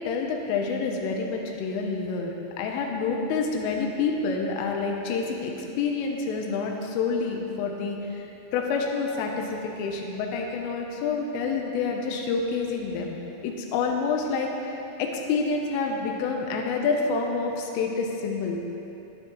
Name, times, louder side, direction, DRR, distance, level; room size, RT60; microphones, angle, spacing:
voice 1, 0.0-8.3 8.5-13.2 13.4-18.6, left 4 dB, 90° left, 1 dB, 3.5 m, -28 dB
15.5 x 12.0 x 3.2 m, 2.9 s
omnidirectional pair, 5.7 m